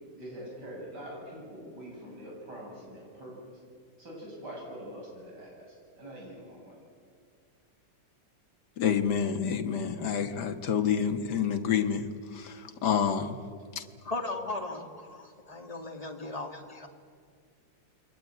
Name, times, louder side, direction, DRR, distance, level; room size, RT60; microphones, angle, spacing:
voice 1, 0.2-3.4 4.0-5.6 6.0-6.7, equal, 60° right, -2 dB, 8.5 m, -44 dB
voice 2, 8.8-13.4 13.8-13.9, left 7 dB, 60° left, 7 dB, 2.0 m, -28 dB
voice 3, 14.0-16.9, left 2 dB, 20° left, 3 dB, 2.4 m, -37 dB
28.5 x 22.5 x 9.2 m, 2.2 s
omnidirectional pair, 2.0 m